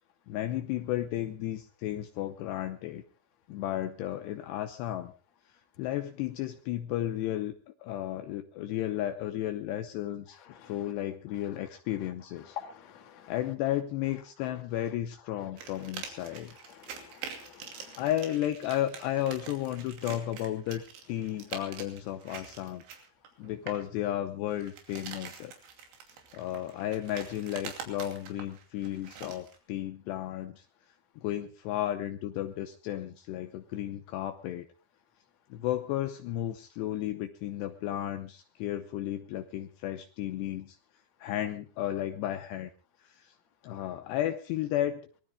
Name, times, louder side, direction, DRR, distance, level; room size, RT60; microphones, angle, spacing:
voice 1, 0.3-3.0 3.5-5.1 5.8-7.5 7.8-12.6 13.3-16.6 17.7-20.8 21.1-22.8 23.4-25.5 26.1-30.7 31.2-34.7 35.5-40.8 41.2-42.7 43.0-43.3 43.6-45.0, left 13 dB, 75° left, 7 dB, 2.8 m, -33 dB
voice 2, 12.6-13.3 16.2-16.3 16.7-18.0, left 10 dB, 45° left, 5 dB, 2.7 m, -47 dB
sound 1, 15.6-23.9 24.5-29.6, right 7 dB, 85° right, 5.1 m, -45 dB
25.0 x 19.5 x 2.3 m, 0.36 s
omnidirectional pair, 5.3 m